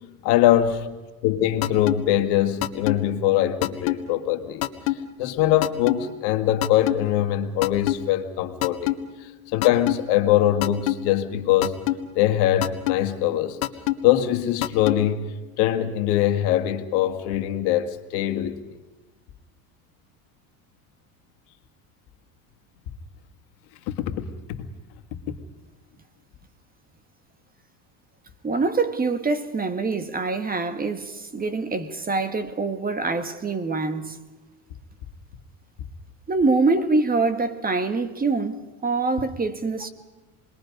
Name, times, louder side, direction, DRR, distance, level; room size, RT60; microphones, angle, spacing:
voice 1, 0.2-0.9 1.2-8.9 9.2-11.8 12.2-13.6 14.0-18.6 23.9-24.7 25.1-25.4, left 12 dB, 70° left, 2.0 m, -23 dB
sound 1, 1.6-2.0 2.6-3.0 3.6-4.0 4.6-5.0 5.6-6.0 6.6-7.0 7.6-8.0 8.6-9.0 9.6-10.0 10.6-11.0 11.6-12.0 12.6-13.0 13.6-14.0 14.6-15.0, left 18 dB, 85° left, 1.4 m, -23 dB
voice 2, 28.4-34.2 36.3-39.9, right 3 dB, 20° right, 1.7 m, -25 dB
28.5 x 21.0 x 5.3 m
supercardioid pair, 100°, 41 cm